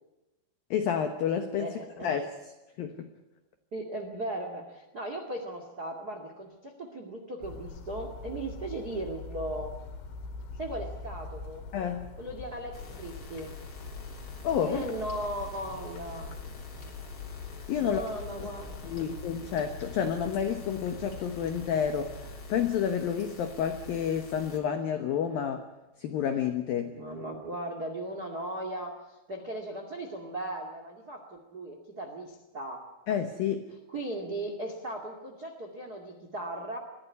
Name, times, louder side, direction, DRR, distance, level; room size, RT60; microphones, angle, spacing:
voice 1, 0.7-1.7 2.0-2.3 2.8-3.1 11.7-12.1 14.4-14.9 17.7-18.0 18.8-22.2 22.5-25.7 26.0-27.0 33.1-33.7, left 8 dB, 85° left, 7 dB, 2.0 m, -29 dB
voice 2, 1.6-2.2 3.7-9.7 10.6-11.7 12.2-13.5 14.7-16.4 17.8-19.1 26.8-32.8 33.9-36.8, right 1 dB, 75° right, 4 dB, 0.9 m, -37 dB
sound 1, 7.4-22.4, left 4 dB, 65° left, 3.8 m, -44 dB
sound 2, 12.7-24.6, left 3 dB, 35° left, 3.3 m, -46 dB
22.5 x 15.0 x 9.6 m, 1.1 s
omnidirectional pair, 6.0 m